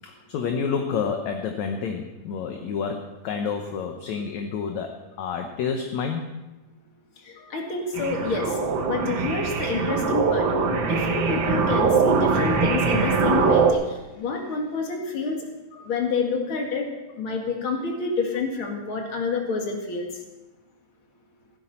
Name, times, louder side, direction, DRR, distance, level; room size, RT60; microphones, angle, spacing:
voice 1, 0.0-4.9 5.2-6.3 7.4-7.5 15.7-15.9, left 6 dB, 70° left, 4 dB, 2.0 m, -29 dB
voice 2, 7.3-8.5 8.9-10.5 10.8-15.4 15.8-16.9 17.2-20.1, left 4 dB, 45° left, 1 dB, 2.6 m, -28 dB
sound 1, 7.9-13.7, right 5 dB, 80° right, 1.0 m, -22 dB
15.5 x 14.0 x 4.3 m, 1.1 s
omnidirectional pair, 3.9 m